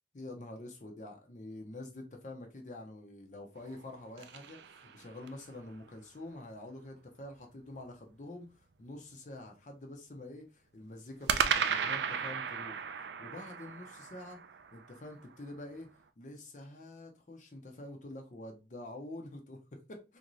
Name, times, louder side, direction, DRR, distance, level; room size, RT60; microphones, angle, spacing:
voice 1, 0.1-12.8 13.2-14.4 14.7-20.2, left 1 dB, 40° left, 0.6 m, -47 dB
sound 1, 3.6-5.5 11.3-15.5, right 7 dB, 75° right, 0.4 m, -35 dB
3.5 x 2.6 x 3.0 m
head